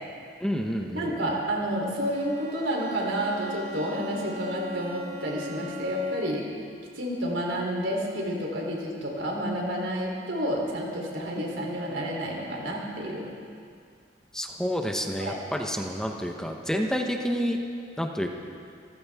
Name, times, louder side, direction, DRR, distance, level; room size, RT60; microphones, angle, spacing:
voice 1, 0.4-1.1 14.3-17.6 18.0-18.3, equal, 5° left, 2 dB, 1.0 m, -29 dB
voice 2, 0.9-6.5 7.0-13.3 15.2-15.4, equal, 85° right, -1 dB, 3.5 m, -30 dB
Bowed string instrument, 2.0-6.4, left 1 dB, 55° right, 4.5 m, -39 dB
26.5 x 14.5 x 3.6 m, 2.3 s
head